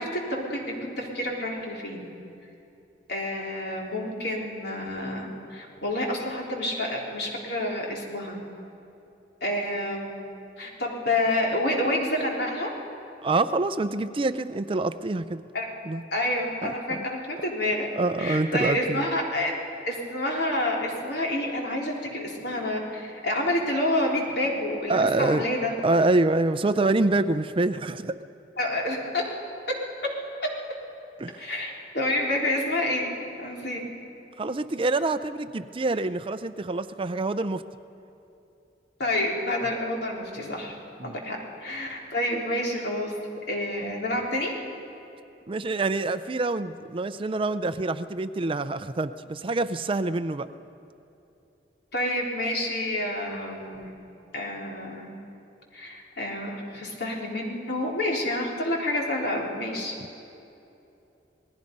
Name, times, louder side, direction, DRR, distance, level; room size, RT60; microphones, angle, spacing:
voice 1, 0.0-2.1 3.1-8.4 9.4-10.2 10.6-12.7 15.5-15.7 16.1-17.9 18.2-19.5 19.9-25.7 28.6-29.2 31.4-33.8 39.0-40.7 41.0-43.1 43.5-44.5 51.9-53.9 54.3-55.1 55.7-60.0, left 1 dB, 65° left, -1 dB, 3.9 m, -28 dB
voice 2, 13.2-15.4 15.8-16.0 16.6-17.0 18.0-19.1 24.9-25.4 25.8-28.2 31.2-31.4 34.4-37.6 41.0-41.2 45.5-50.5, right 2 dB, 30° right, 12 dB, 0.5 m, -26 dB
28.0 x 19.0 x 5.4 m, 2.8 s
head